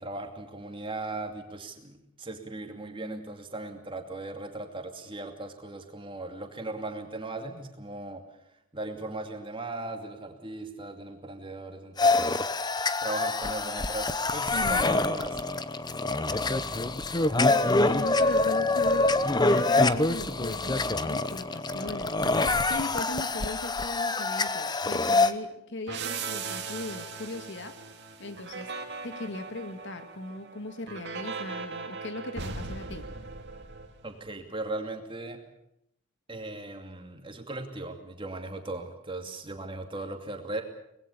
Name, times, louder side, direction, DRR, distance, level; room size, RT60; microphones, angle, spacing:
voice 1, 0.0-8.2 8.7-12.4 13.0-15.4 34.0-35.4 36.3-40.6, right 2 dB, 25° right, 5 dB, 2.6 m, -38 dB
sound 1, 12.0-25.3, left 2 dB, 20° left, 0.8 m, -26 dB
voice 2, 14.5-15.2 17.4-19.1 19.5-27.8 28.2-28.7 29.0-33.1, left 2 dB, 55° left, 8 dB, 1.9 m, -38 dB
sound 2, 25.9-34.3, right 4 dB, 50° right, 2.4 m, -39 dB
24.5 x 20.5 x 7.1 m, 0.78 s
head